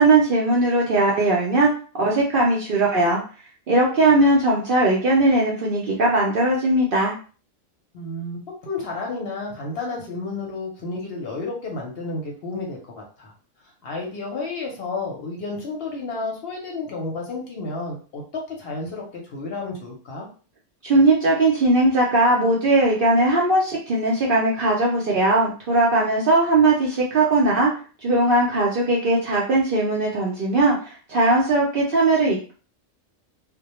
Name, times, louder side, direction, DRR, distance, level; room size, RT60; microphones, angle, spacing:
voice 1, 0.0-1.7 2.0-3.2 3.7-7.1 20.8-27.7 28.0-32.5, right 2 dB, 60° right, -3 dB, 0.6 m, -19 dB
voice 2, 7.9-13.3 13.8-20.3, left 3 dB, 60° left, -1 dB, 0.8 m, -31 dB
2.1 x 2.1 x 2.9 m, 0.38 s
omnidirectional pair, 1.3 m